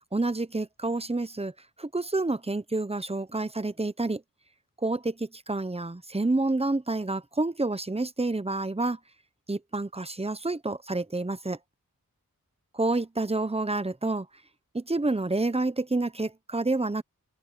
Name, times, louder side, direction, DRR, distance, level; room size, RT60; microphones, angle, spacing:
voice 1, 0.1-1.5 1.8-4.2 4.8-9.0 9.5-11.6 12.7-14.3 14.7-17.0, right 2 dB, 15° right, 0.9 m, -28 dB
open air
wide cardioid pair, 50°, 35 cm